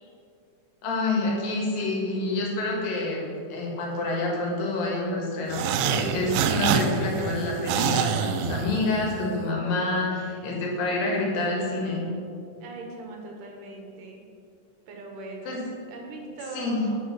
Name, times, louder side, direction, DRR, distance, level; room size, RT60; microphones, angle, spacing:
voice 1, 0.8-12.0 15.5-15.6 16.5-16.8, left 2 dB, 85° left, -2 dB, 3.4 m, -28 dB
sound 1, 5.5-9.2, right 7 dB, 90° right, 2.3 m, -26 dB
voice 2, 10.9-11.2 12.6-14.2 14.9-15.6 15.9-17.0, right 2 dB, 75° right, 1 dB, 2.7 m, -40 dB
8.3 x 6.6 x 6.0 m, 2.6 s
omnidirectional pair, 3.9 m